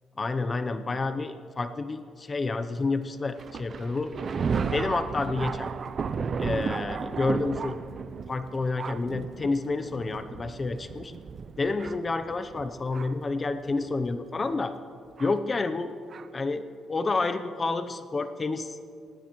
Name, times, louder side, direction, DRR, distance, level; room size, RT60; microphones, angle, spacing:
voice 1, 0.2-4.1 4.7-5.7 6.4-7.8 8.3-11.1 11.6-14.7 15.2-15.9 16.3-18.8, left 3 dB, 30° left, 10 dB, 0.6 m, -29 dB
Thunder, 3.4-13.3 14.1-14.2 15.2-15.3 16.1-16.3, right 5 dB, 50° right, 0.5 m, -34 dB
18.5 x 17.5 x 3.1 m, 2.4 s
cardioid pair, 90°, 0 cm